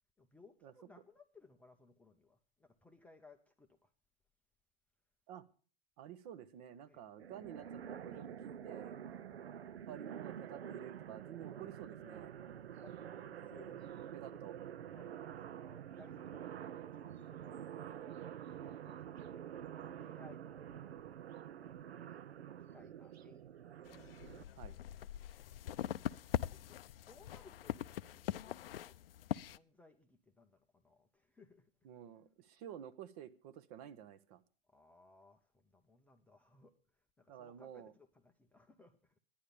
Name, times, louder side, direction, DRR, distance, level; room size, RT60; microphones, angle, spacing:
voice 1, 0.2-3.9 6.9-7.0 9.1-9.4 11.5-11.7 12.3-14.4 14.9-17.7 18.4-20.8 21.6-22.1 22.7-23.7 24.2-24.9 26.5-28.9 29.5-31.7 34.7-36.8 37.2-39.1, left 3 dB, 5° left, 0.5 m, -63 dB
voice 2, 6.0-8.4 8.6-9.0 9.9-12.4 14.1-14.6 24.6-24.8 31.8-34.4 37.3-37.9, right 10 dB, 35° right, 0.8 m, -51 dB
sound 1, 7.2-24.4, right 9 dB, 75° right, 0.6 m, -48 dB
sound 2, 23.9-29.6, left 12 dB, 65° left, 0.5 m, -42 dB
11.0 x 10.0 x 6.7 m
hypercardioid pair, 120°, 32 cm